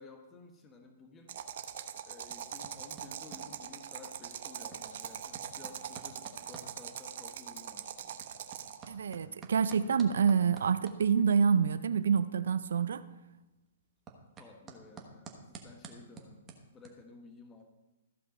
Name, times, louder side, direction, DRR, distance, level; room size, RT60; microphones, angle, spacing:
voice 1, 0.0-1.3 2.0-8.3 14.4-17.6, left 4 dB, 20° left, 4 dB, 1.3 m, -54 dB
sound 1, 1.3-8.9, right 9 dB, 60° right, 0.8 m, -42 dB
sound 2, 2.1-16.9, right 5 dB, 20° right, 1.3 m, -54 dB
voice 2, 8.9-13.0, right 6 dB, 75° right, 14 dB, 0.5 m, -27 dB
14.5 x 5.3 x 4.3 m, 1.0 s
hypercardioid pair, 140°, 0 cm